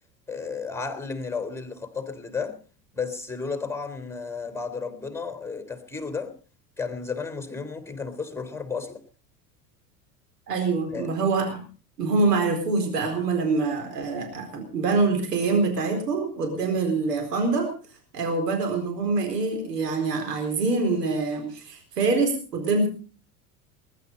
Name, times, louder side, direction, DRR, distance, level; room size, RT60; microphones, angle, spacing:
voice 1, 0.3-2.6 2.9-6.3 6.8-9.0 10.9-11.1, left 5 dB, 5° left, 3.4 m, -33 dB
voice 2, 10.5-11.6 12.0-17.7 18.1-22.9, right 3 dB, 80° right, 4.4 m, -25 dB
21.0 x 11.5 x 5.3 m
hypercardioid pair, 80°, 48 cm